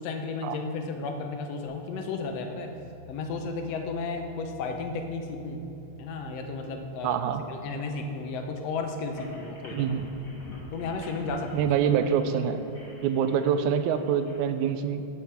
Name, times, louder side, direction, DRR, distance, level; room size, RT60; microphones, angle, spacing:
voice 1, 0.0-2.7 3.1-5.6 6.0-7.2 7.5-9.9 10.7-11.7, left 4 dB, 70° left, 4 dB, 1.9 m, -33 dB
sound 1, 2.0-11.2, left 6 dB, 45° left, 2.2 m, -52 dB
voice 2, 7.0-7.4 9.7-10.1 11.5-12.7 13.0-15.1, right 8 dB, 90° right, 10 dB, 2.0 m, -25 dB
sound 2, 9.0-14.4, left 1 dB, 25° left, 2.2 m, -46 dB
9.5 x 8.0 x 6.0 m, 2.9 s
omnidirectional pair, 3.4 m